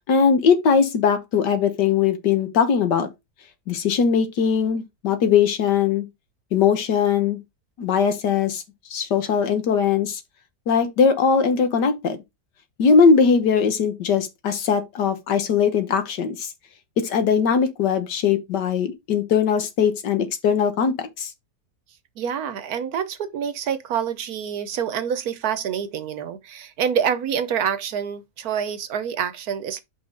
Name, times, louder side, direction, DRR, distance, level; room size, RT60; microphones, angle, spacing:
voice 1, 0.1-3.1 3.7-6.0 6.5-7.4 7.8-8.6 8.9-10.2 10.7-12.2 12.8-16.5 17.0-21.3, left 6 dB, 80° left, 1.8 m, -20 dB
voice 2, 22.2-29.8, right 8 dB, 65° right, 1.2 m, -27 dB
5.6 x 4.0 x 5.2 m
omnidirectional pair, 1.8 m